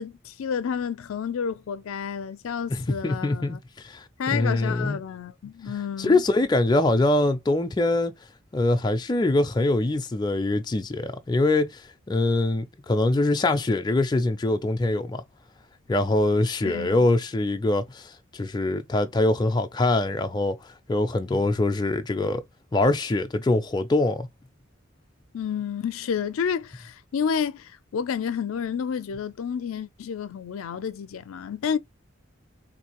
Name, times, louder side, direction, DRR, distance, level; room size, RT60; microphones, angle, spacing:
voice 1, 0.0-3.6 4.2-6.2 16.6-17.1 25.3-31.8, left 7 dB, 85° left, 0.4 m, -30 dB
voice 2, 2.7-4.0 4.3-5.0 6.0-8.1 8.5-15.2 15.9-22.4 22.7-24.3, left 2 dB, 20° left, 0.4 m, -23 dB
3.6 x 2.6 x 2.9 m
head